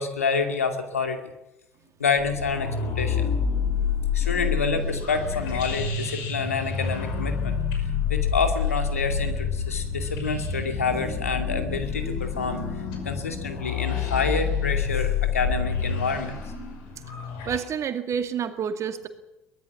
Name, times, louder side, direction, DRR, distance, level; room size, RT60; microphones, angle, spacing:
voice 1, 0.0-1.3 2.0-3.3 4.1-7.6 8.1-12.6 13.0-16.4, left 5 dB, 80° left, 6 dB, 2.4 m, -28 dB
sound 1, 2.2-17.6, left 6 dB, 60° left, 5.7 m, -28 dB
voice 2, 17.5-19.1, right 7 dB, 40° right, 8 dB, 2.2 m, -28 dB
23.0 x 19.5 x 7.2 m, 0.92 s
figure-of-eight pair, 60°, 8 cm